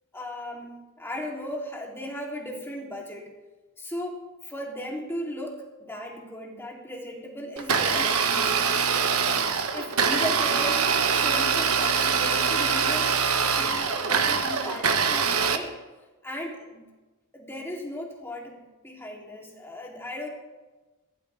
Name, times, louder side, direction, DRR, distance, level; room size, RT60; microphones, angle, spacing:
voice 1, 0.1-3.3 3.8-8.7 9.7-10.9 11.1-13.2 13.5-15.8 16.2-16.8 17.3-20.3, left 1 dB, 10° left, -2 dB, 3.6 m, -36 dB
Domestic sounds home sounds, 7.6-15.6, right 5 dB, 85° right, 1.5 m, -24 dB
21.5 x 17.5 x 3.7 m, 1.2 s
head